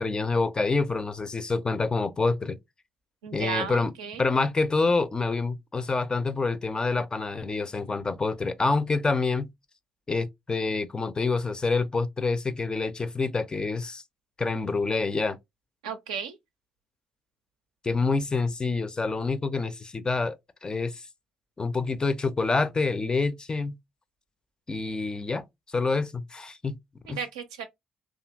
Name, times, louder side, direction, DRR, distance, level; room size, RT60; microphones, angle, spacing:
voice 1, 0.0-2.6 3.3-3.9 4.2-9.5 10.1-14.0 14.4-15.4 17.8-21.1 21.6-23.8 24.7-26.8 27.1-27.2, left 3 dB, 25° left, 0.4 m, -27 dB
voice 2, 3.2-4.2 15.8-16.4 27.1-27.6, right 7 dB, 80° right, 0.4 m, -34 dB
2.7 x 2.4 x 2.4 m
figure-of-eight pair, 45°, 3 cm